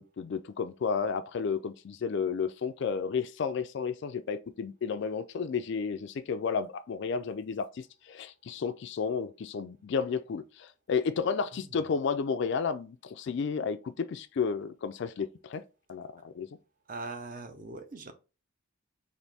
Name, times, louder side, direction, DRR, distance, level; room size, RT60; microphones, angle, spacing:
voice 1, 0.0-15.6 15.9-16.5, left 5 dB, 55° left, 0.3 m, -32 dB
voice 2, 16.9-18.1, right 3 dB, 40° right, 0.6 m, -41 dB
4.1 x 2.6 x 3.3 m
head